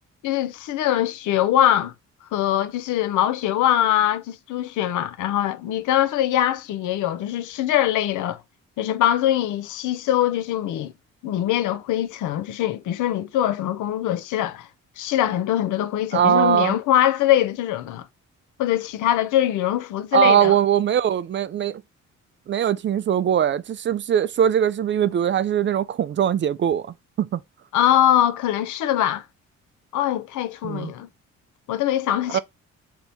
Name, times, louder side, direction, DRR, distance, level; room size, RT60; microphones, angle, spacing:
voice 1, 0.2-1.9 2.3-8.4 8.8-10.9 11.2-14.7 15.0-18.1 18.6-20.6 27.7-29.2 29.9-31.1 31.7-32.4, left 12 dB, 80° left, 0.6 m, -22 dB
voice 2, 16.1-16.8 20.1-21.8 22.5-27.4 30.6-30.9 32.3-32.4, right 9 dB, 40° right, 0.4 m, -21 dB
3.3 x 2.8 x 4.0 m
cardioid pair, 90°, 30 cm